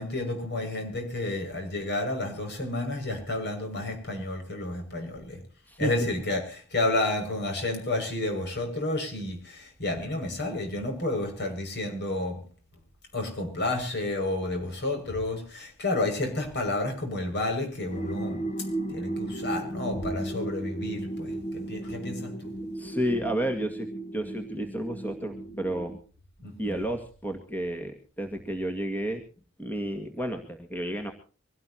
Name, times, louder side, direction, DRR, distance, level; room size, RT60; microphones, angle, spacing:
voice 1, 0.0-5.4 5.8-12.4 13.1-22.5 26.4-26.8, left 2 dB, 50° left, 6.4 m, -31 dB
sound 1, 17.9-26.0, right 1 dB, 35° left, 1.4 m, -35 dB
voice 2, 22.8-26.0 26.6-29.2 29.6-31.1, right 1 dB, 10° left, 2.0 m, -31 dB
25.0 x 17.5 x 2.9 m
head